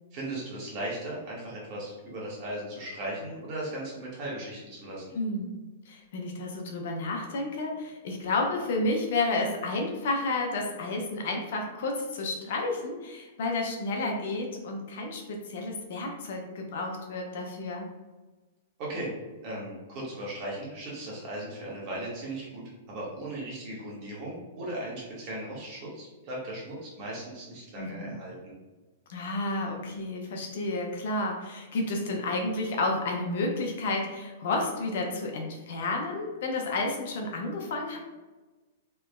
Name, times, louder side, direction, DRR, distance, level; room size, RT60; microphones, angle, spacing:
voice 1, 0.1-5.0 18.8-19.1 19.4-22.6 22.9-28.5, right 1 dB, 45° right, -5 dB, 1.5 m, -37 dB
voice 2, 5.1-5.6 5.9-17.9 27.8-28.1 29.1-38.0, left 2 dB, 65° left, 1 dB, 0.7 m, -31 dB
3.3 x 3.0 x 2.2 m, 1.2 s
hypercardioid pair, 120°, 0 cm